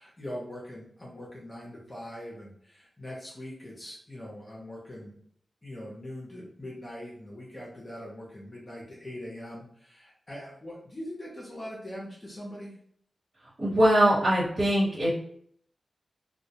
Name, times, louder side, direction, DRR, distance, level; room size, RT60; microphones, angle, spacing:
voice 1, 0.0-5.2 5.6-12.8, left 1 dB, 25° left, -4 dB, 0.6 m, -42 dB
voice 2, 13.6-15.1, right 1 dB, 50° right, -11 dB, 1.1 m, -22 dB
2.1 x 2.1 x 2.7 m, 0.64 s
wide cardioid pair, 150°, 0 cm